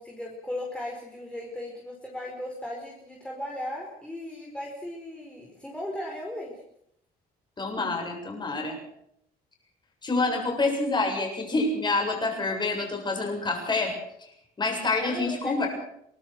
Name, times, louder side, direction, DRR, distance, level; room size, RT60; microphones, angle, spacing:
voice 1, 0.0-6.6 15.0-15.7, left 1 dB, 5° left, -2 dB, 4.7 m, -37 dB
voice 2, 7.6-8.7 10.0-13.9 14.6-15.7, left 3 dB, 25° left, 2 dB, 7.7 m, -27 dB
24.0 x 19.5 x 6.3 m, 0.74 s
cardioid pair, 110°, 17 cm